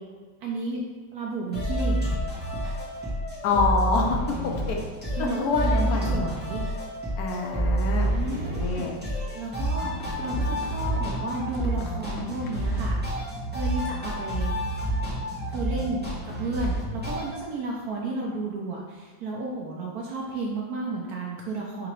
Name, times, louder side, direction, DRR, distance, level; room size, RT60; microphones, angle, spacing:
voice 1, 0.4-0.8 1.1-2.2 5.2-6.6 8.1-8.9 9.3-13.0 13.5-14.5 15.5-21.9, right 2 dB, 70° right, -2 dB, 0.9 m, -32 dB
sound 1, 1.5-17.3, right 1 dB, 5° right, 1.1 m, -29 dB
voice 2, 3.4-4.2 4.7-4.8 5.2-6.2 7.2-9.0, left 4 dB, 65° left, 0 dB, 1.0 m, -26 dB
sound 2, 10.0-13.1, left 5 dB, 85° left, 1.3 m, -44 dB
3.8 x 2.9 x 4.5 m, 1.5 s
omnidirectional pair, 2.0 m